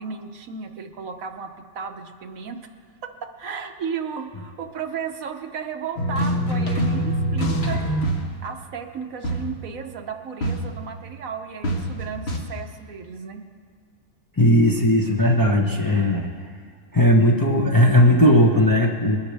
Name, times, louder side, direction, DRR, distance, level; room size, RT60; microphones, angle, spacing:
voice 1, 0.0-1.5 1.7-2.6 3.2-7.8 8.4-13.4, right 6 dB, 70° right, 6 dB, 1.2 m, -34 dB
sound 1, 6.0-8.4 9.2-9.6 10.4-10.9 11.6-12.4, right 1 dB, 45° left, 1.5 m, -24 dB
voice 2, 14.4-16.3 16.9-19.2, equal, 15° left, -1 dB, 0.9 m, -17 dB
21.0 x 11.5 x 3.4 m, 2.1 s
omnidirectional pair, 1.5 m